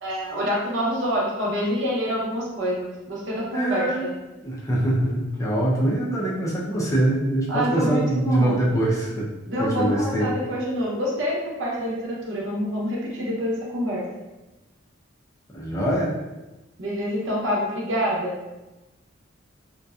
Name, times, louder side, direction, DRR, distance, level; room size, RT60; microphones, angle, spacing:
voice 1, 0.0-4.1 7.5-8.6 9.4-14.1 16.8-18.4, equal, 70° right, -4 dB, 0.7 m, -26 dB
voice 2, 3.5-4.0 4.4-9.3 9.6-10.3 15.5-16.1, right 1 dB, 15° left, -5 dB, 0.4 m, -23 dB
2.6 x 2.1 x 2.3 m, 1.0 s
head